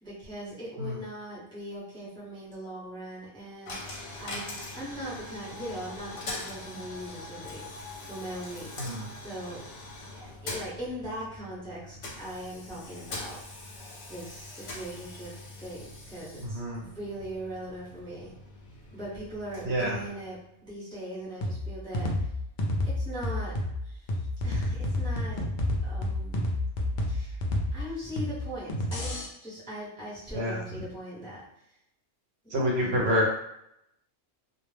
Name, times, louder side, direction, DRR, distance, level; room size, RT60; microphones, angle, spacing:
voice 1, 0.0-7.7 8.0-8.7 9.2-9.6 10.1-13.4 13.8-15.3 15.6-18.3 18.9-20.4 20.6-22.1 22.9-23.5 23.8-24.0 24.4-25.4 25.8-26.4 27.1-27.4 27.7-31.4 32.8-33.2, equal, 5° left, -8 dB, 0.6 m, -40 dB
Coin (dropping), 3.7-20.6, left 2 dB, 75° left, 1.0 m, -43 dB
voice 2, 16.4-16.8 19.6-20.0 30.3-30.6 32.5-33.3, equal, 65° right, -3 dB, 0.9 m, -27 dB
sound 1, 21.4-29.3, left 1 dB, 55° left, 0.5 m, -30 dB
2.4 x 2.0 x 3.2 m, 0.78 s
omnidirectional pair, 1.2 m